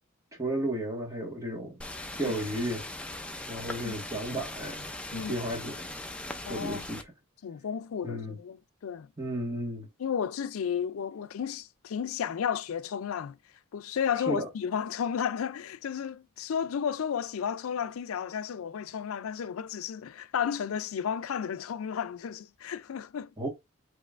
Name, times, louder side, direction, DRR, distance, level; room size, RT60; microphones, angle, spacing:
voice 1, 0.4-1.8 2.2-2.8 3.5-5.9 6.5-7.1 8.0-8.4 9.2-9.9 14.3-14.5 23.4-23.5, right 1 dB, 15° right, 1.5 m, -33 dB
sound 1, 1.8-7.0, left 2 dB, 5° left, 0.5 m, -40 dB
voice 2, 5.1-5.4 6.5-6.9 7.4-9.1 10.0-13.4 13.7-23.3, left 8 dB, 85° left, 0.4 m, -33 dB
5.3 x 3.0 x 2.5 m
head